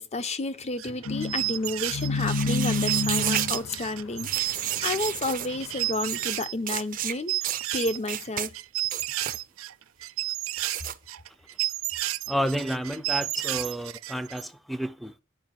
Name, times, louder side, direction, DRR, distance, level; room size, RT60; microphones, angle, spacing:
voice 1, 0.0-7.3 7.7-8.5, left 2 dB, 35° left, 0.9 m, -31 dB
sound 1, 0.8-6.5 6.8-8.3 8.5-14.4, right 16 dB, 85° right, 0.5 m, -32 dB
sound 2, 1.1-5.9, left 3 dB, 70° left, 0.7 m, -30 dB
sound 3, 2.2-3.6 4.2-5.5 6.0-6.4 6.7-7.1 7.4-7.6 8.1-8.5 8.8-9.4 10.6-10.9, right 11 dB, 45° right, 0.7 m, -31 dB
voice 2, 12.3-15.1, equal, ahead, 0.7 m, -30 dB
9.4 x 5.3 x 7.5 m
head